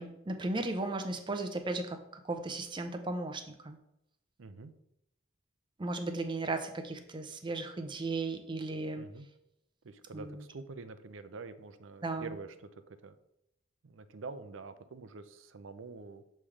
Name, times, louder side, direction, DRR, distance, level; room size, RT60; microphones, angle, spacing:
voice 1, 0.0-3.8 5.8-9.1 10.1-10.4 12.0-12.4, right 2 dB, 25° right, 6 dB, 0.6 m, -36 dB
voice 2, 4.4-4.7 8.9-9.3 9.8-12.5 12.9-13.2 13.8-16.2, right 4 dB, 75° right, 11 dB, 0.5 m, -46 dB
7.1 x 3.2 x 4.9 m, 0.82 s
head